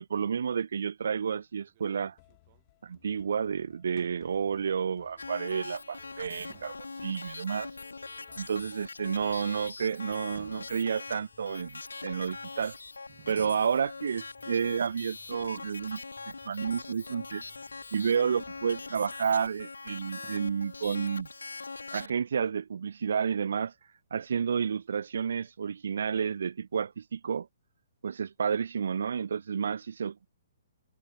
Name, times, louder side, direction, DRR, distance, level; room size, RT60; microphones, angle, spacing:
voice 1, 0.0-2.1 2.8-6.7 7.0-7.7 8.4-12.8 13.3-16.0 16.5-17.4 17.9-21.3 21.9-23.7 24.1-27.5 28.0-30.3, right 6 dB, 60° right, 0.6 m, -30 dB
sound 1, 1.6-3.3 4.0-4.6 6.2-7.1 9.1-9.9 10.4-11.5 13.1-14.5 16.9-19.4 20.2-21.2, right 16 dB, 40° right, 3.6 m, -58 dB
sound 2, 2.2-20.0, left 25 dB, 35° left, 7.7 m, -64 dB
sound 3, 5.2-22.1, left 3 dB, 75° left, 0.7 m, -42 dB
figure-of-eight pair, 125°, 0 cm